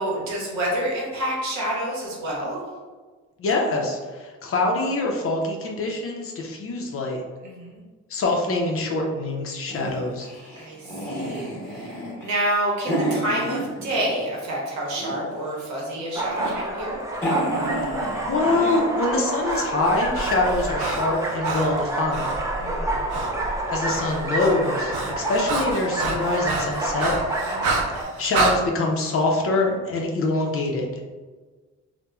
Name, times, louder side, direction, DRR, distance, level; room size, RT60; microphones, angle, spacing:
voice 1, 0.0-2.6 7.4-7.8 10.5-17.0 22.6-23.2 27.5-27.9, right 1 dB, 65° right, -3 dB, 0.9 m, -28 dB
voice 2, 3.4-7.2 8.1-10.3 18.2-22.3 23.7-27.2 28.2-30.9, left 2 dB, 45° left, 0 dB, 0.5 m, -24 dB
Growled Dog, 9.7-14.3 14.6-15.4 16.0-16.6 16.9-17.0 17.1-18.8, equal, 5° left, 1.0 m, -30 dB
sound 1, 16.1-28.0, right 2 dB, 10° right, 0.3 m, -28 dB
Breathing, 19.2-22.4 23.1-23.3 23.6-28.6, right 3 dB, 85° right, 0.5 m, -29 dB
2.9 x 2.1 x 2.3 m, 1.4 s
cardioid pair, 90°, 30 cm